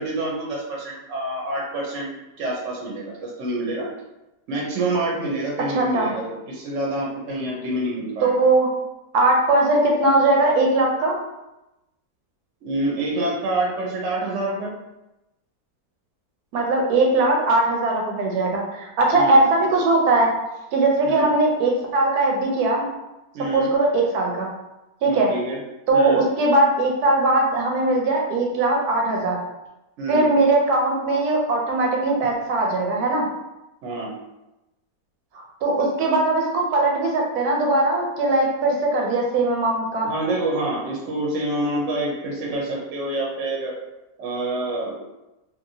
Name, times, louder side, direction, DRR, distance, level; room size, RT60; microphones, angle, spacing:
voice 1, 0.0-3.9 4.5-8.4 12.6-14.7 19.1-19.4 21.0-21.3 23.3-23.7 25.1-25.6 25.9-26.2 30.0-30.3 33.8-34.1 40.0-43.7 44.2-45.0, right 2 dB, 60° right, -3 dB, 0.9 m, -27 dB
voice 2, 5.7-6.1 8.2-8.7 9.1-11.2 16.5-20.3 20.7-22.9 23.5-24.5 25.0-25.3 25.9-29.4 30.1-33.3 35.3-40.1, right 2 dB, 85° right, 0 dB, 1.2 m, -20 dB
2.9 x 2.6 x 2.6 m, 0.98 s
omnidirectional pair, 1.6 m